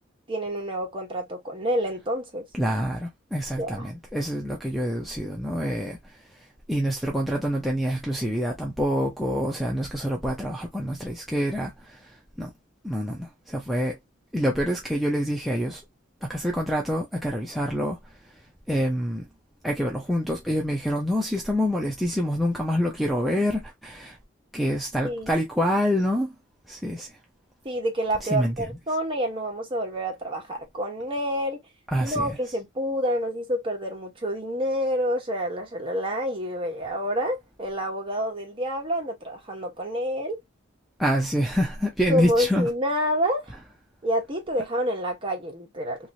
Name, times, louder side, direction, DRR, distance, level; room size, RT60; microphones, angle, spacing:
voice 1, 0.3-2.4 3.6-3.9 25.0-25.3 27.6-31.6 32.0-40.4 42.1-43.5 44.0-46.0, equal, 25° right, 1.2 m, -28 dB
voice 2, 2.5-12.5 12.8-14.0 14.3-15.8 16.2-18.0 18.7-19.3 19.6-24.2 24.5-26.3 26.7-27.1 28.2-28.7 31.9-32.4 41.0-42.7, equal, ahead, 0.5 m, -26 dB
3.0 x 3.0 x 2.7 m
head